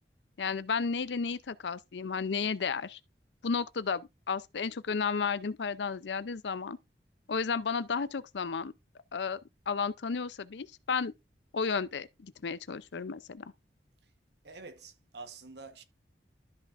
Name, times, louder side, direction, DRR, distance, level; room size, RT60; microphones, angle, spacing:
voice 1, 0.4-3.0 3.4-6.8 7.3-8.7 9.1-9.4 9.7-11.1 11.5-13.5, left 5 dB, 80° left, 0.5 m, -33 dB
voice 2, 14.4-15.8, right 4 dB, 70° right, 1.1 m, -47 dB
12.5 x 5.8 x 2.5 m
head